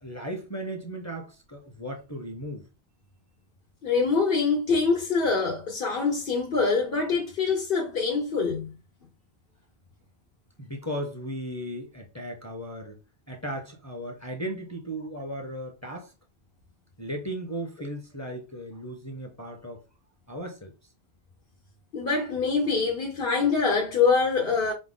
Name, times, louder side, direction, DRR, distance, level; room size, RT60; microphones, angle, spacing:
voice 1, 0.0-2.7 10.6-13.0 13.3-16.1 17.0-19.8 20.3-20.7, right 1 dB, 20° left, 0.7 m, -36 dB
voice 2, 3.8-8.7 21.9-24.7, left 4 dB, 65° left, 1.1 m, -24 dB
5.0 x 2.2 x 3.7 m
omnidirectional pair, 1.0 m